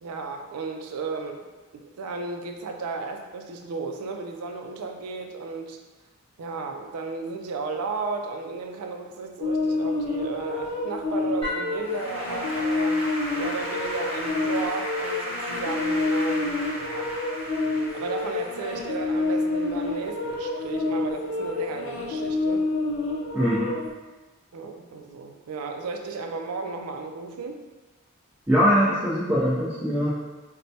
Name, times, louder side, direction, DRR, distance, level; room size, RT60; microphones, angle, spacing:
voice 1, 0.0-5.8 6.4-13.0 13.3-17.1 17.9-22.6 24.5-27.6, right 4 dB, 90° right, 4 dB, 0.4 m, -34 dB
sound 1, 9.4-23.9, left 3 dB, 70° left, 0.5 m, -28 dB
Applause / Keyboard (musical), 11.4-20.7, equal, 25° right, 0.8 m, -35 dB
voice 2, 23.3-23.8 28.5-30.2, equal, 10° right, -10 dB, 0.5 m, -22 dB
4.2 x 2.2 x 2.7 m, 1.2 s
head